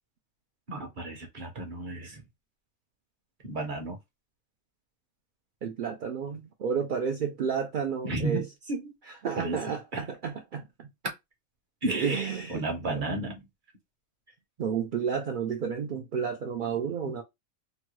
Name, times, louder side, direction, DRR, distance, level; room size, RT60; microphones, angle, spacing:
voice 1, 0.7-2.2 3.4-4.0 8.0-8.9 9.4-9.6 9.9-10.0 11.8-13.4 17.0-17.2, right 2 dB, 45° right, 0.8 m, -33 dB
voice 2, 5.6-8.4 9.2-10.9 11.9-13.1 14.6-17.2, right 6 dB, 75° right, 0.4 m, -31 dB
2.9 x 2.2 x 3.0 m
omnidirectional pair, 1.4 m